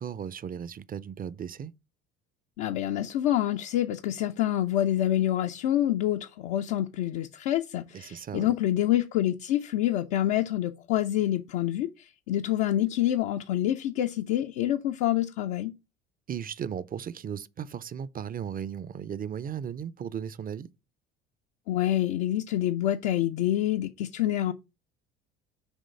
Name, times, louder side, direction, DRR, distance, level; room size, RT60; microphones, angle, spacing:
voice 1, 0.0-1.7 7.9-8.5 16.3-20.7, right 8 dB, 30° right, 0.5 m, -36 dB
voice 2, 2.6-15.7 21.7-24.5, left 12 dB, 70° left, 0.6 m, -27 dB
6.3 x 3.1 x 5.2 m
hypercardioid pair, 65°, 31 cm